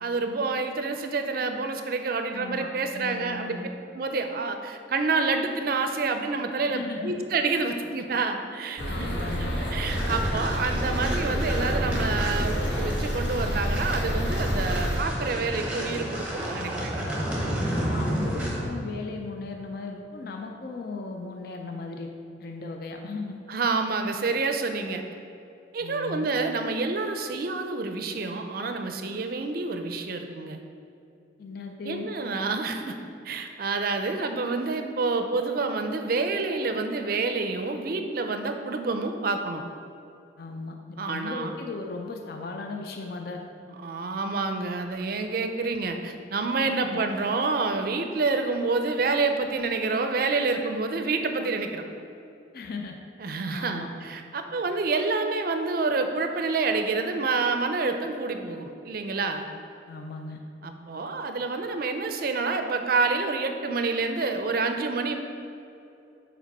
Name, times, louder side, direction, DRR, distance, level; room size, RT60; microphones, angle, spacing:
voice 1, 0.0-3.6 3.9-9.1 9.7-17.1 23.5-25.0 25.7-30.6 31.8-33.0 33.2-39.6 41.0-41.5 43.7-51.8 53.2-59.5 60.6-65.2, right 3 dB, 50° right, 6 dB, 0.4 m, -28 dB
voice 2, 2.3-3.7 6.7-7.1 8.9-9.5 17.7-22.1 22.4-23.4 25.8-26.3 31.4-32.1 40.4-43.4 46.7-47.0 52.5-52.9 53.5-53.9 59.9-60.4, left 3 dB, 55° left, 3 dB, 0.4 m, -37 dB
sound 1, 8.8-15.0, equal, 75° left, 1.2 m, -29 dB
sound 2, 9.8-18.7, equal, 5° right, 0.8 m, -31 dB
5.1 x 4.4 x 5.3 m, 2.7 s
head